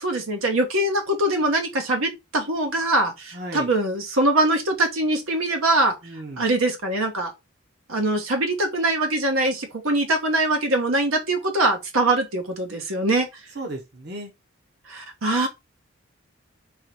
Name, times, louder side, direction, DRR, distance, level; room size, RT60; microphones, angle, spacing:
voice 1, 0.0-5.9 6.4-7.3 7.9-13.3 14.9-15.5, right 2 dB, 80° right, 1.2 m, -23 dB
voice 2, 3.3-3.7 6.0-6.5 13.5-14.3, right 1 dB, 50° right, 1.1 m, -35 dB
3.8 x 2.9 x 4.7 m
head